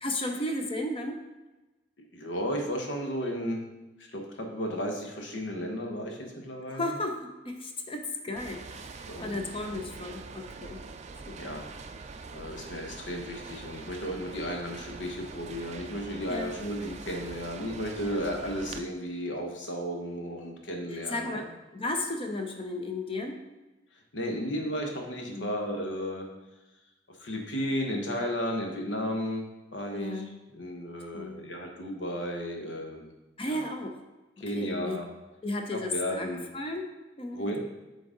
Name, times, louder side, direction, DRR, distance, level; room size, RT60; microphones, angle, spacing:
voice 1, 0.0-1.2 6.7-7.2 7.4-10.8 11.3-11.6 16.3-16.5 18.0-18.2 21.1-21.5 21.7-23.4 25.3-25.5 29.9-30.3 31.1-31.4 33.4-34.0 34.6-35.0 35.4-36.8 37.2-37.6, left 2 dB, 30° left, 4 dB, 0.6 m, -34 dB
voice 2, 2.1-3.6 4.0-6.9 9.1-9.8 11.3-11.7 12.3-21.4 24.1-26.3 27.2-30.2 30.5-33.1 33.4-33.6 34.4-35.0 35.7-36.4 37.3-37.6, equal, 85° left, 2 dB, 1.1 m, -34 dB
sound 1, 8.4-18.8, right 4 dB, 35° right, 0.4 m, -44 dB
7.3 x 3.9 x 3.8 m, 1.1 s
head